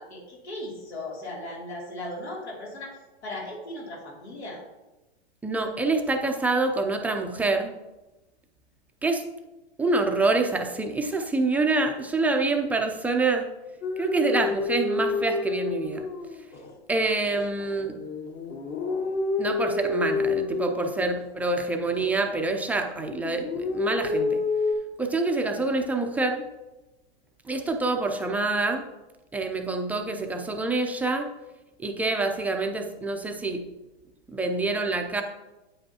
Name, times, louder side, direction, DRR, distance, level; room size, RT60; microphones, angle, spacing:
voice 1, 0.0-4.6, left 1 dB, 90° left, -3 dB, 2.8 m, -37 dB
voice 2, 5.4-7.7 9.0-9.2 9.8-13.5 14.0-16.0 16.9-18.0 19.4-24.4 25.0-26.4 27.5-28.8 29.3-31.3 31.8-33.6 34.3-35.2, right 3 dB, 5° right, 3 dB, 0.4 m, -26 dB
sound 1, 13.8-16.7 17.3-21.5 21.9-22.9 23.2-24.7, left 3 dB, 30° left, 1.0 m, -29 dB
8.7 x 7.8 x 2.8 m, 1.0 s
hypercardioid pair, 130°, 32 cm